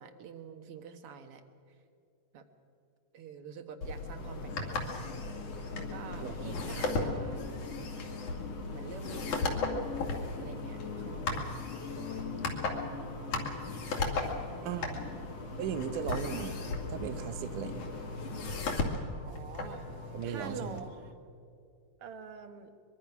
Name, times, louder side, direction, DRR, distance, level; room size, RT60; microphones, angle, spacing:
voice 1, 0.0-1.8 2.3-2.4 3.1-4.8 5.7-7.4 8.7-9.7 10.4-11.6 11.9-12.3 12.8-13.3 14.4-15.3 16.1-16.3 19.2-19.9 20.2-20.9 22.0-22.7, right 6 dB, 55° right, 7 dB, 1.9 m, -47 dB
sound 1, 3.8-20.8, left 3 dB, 70° left, 3.8 m, -37 dB
sound 2, 4.2-18.6, left 5 dB, 55° left, 2.5 m, -44 dB
voice 2, 6.2-6.6 14.6-15.0 15.6-16.6 16.9-17.9 20.1-20.8, right 9 dB, 80° right, 10 dB, 2.5 m, -37 dB
sound 3, 7.2-21.1, left 3 dB, 30° right, 1.6 m, -52 dB
23.0 x 23.0 x 6.0 m, 2.5 s
omnidirectional pair, 3.6 m